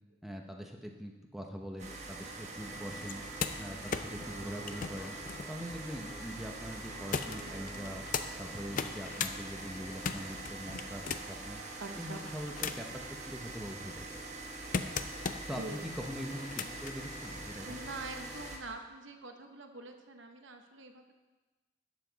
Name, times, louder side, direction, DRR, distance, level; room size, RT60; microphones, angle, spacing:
voice 1, 0.2-3.2 3.6-5.1 5.5-8.0 8.4-11.6 11.9-14.2 15.5-17.8, equal, ahead, 1 dB, 0.8 m, -43 dB
sound 1, 1.8-18.6, right 2 dB, 35° right, 1.3 m, -44 dB
sound 2, 2.7-9.0, equal, 15° left, 2.0 m, -53 dB
sound 3, 3.0-6.3 7.1-8.3 8.7-9.4 9.8-11.4 12.1-13.0 13.5-15.6 16.3-17.0 18.0-18.1, left 6 dB, 40° left, 0.5 m, -38 dB
voice 2, 11.8-12.2 15.6-15.8 17.6-21.2, right 3 dB, 70° right, 5 dB, 1.0 m, -45 dB
12.0 x 8.3 x 4.0 m, 1.2 s
head